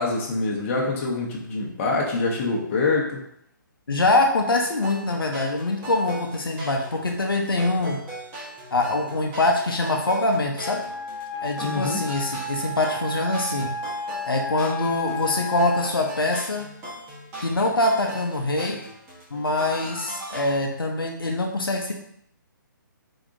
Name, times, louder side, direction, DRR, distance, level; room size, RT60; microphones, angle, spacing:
voice 1, 0.0-3.2 11.6-12.0, left 3 dB, 35° left, -2 dB, 0.9 m, -25 dB
voice 2, 3.9-8.0 8.7-10.8 11.4-13.7 14.3-16.7 17.4-18.8 19.3-21.9, left 2 dB, 90° left, 1 dB, 0.6 m, -24 dB
sound 1, 4.6-20.4, right 1 dB, 20° right, 1.2 m, -39 dB
Wind instrument woodwind instrument, 10.6-16.0, left 1 dB, 5° left, 0.4 m, -33 dB
3.9 x 3.4 x 2.6 m, 0.72 s
figure-of-eight pair, 140°, 11 cm